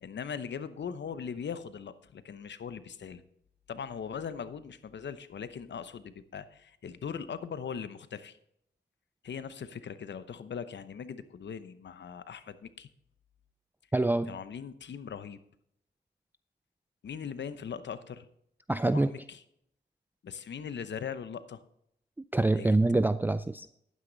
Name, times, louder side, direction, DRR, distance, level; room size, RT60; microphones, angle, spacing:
voice 1, 0.0-3.2 3.7-8.4 9.2-12.9 14.3-15.4 17.0-18.3 18.9-19.4 20.2-21.6 22.5-22.7, left 7 dB, 70° left, 0.9 m, -40 dB
voice 2, 13.9-14.3 18.7-19.1 22.3-23.7, right 2 dB, 10° right, 0.4 m, -25 dB
11.0 x 9.6 x 4.0 m
cardioid pair, 70°, 19 cm